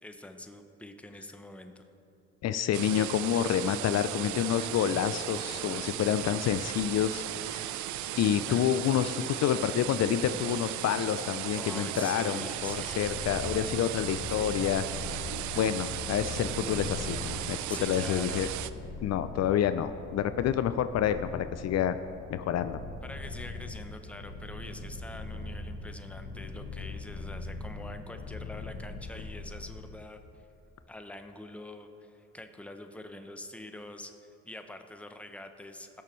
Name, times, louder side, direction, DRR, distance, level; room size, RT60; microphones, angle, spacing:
voice 1, 0.0-1.9 8.5-8.7 11.6-13.1 17.7-18.4 23.0-30.2 30.9-36.0, left 1 dB, 5° left, 6 dB, 0.7 m, -45 dB
voice 2, 2.4-7.8 8.2-15.3 15.5-18.5 19.0-22.0 22.3-22.8, left 10 dB, 60° left, 11 dB, 0.4 m, -28 dB
sound 1, 2.7-18.7, right 13 dB, 75° right, 0.4 m, -36 dB
Purr, 12.4-30.1, left 3 dB, 85° left, 1.2 m, -41 dB
17.0 x 6.8 x 3.1 m, 2.9 s
cardioid pair, 90°, 30 cm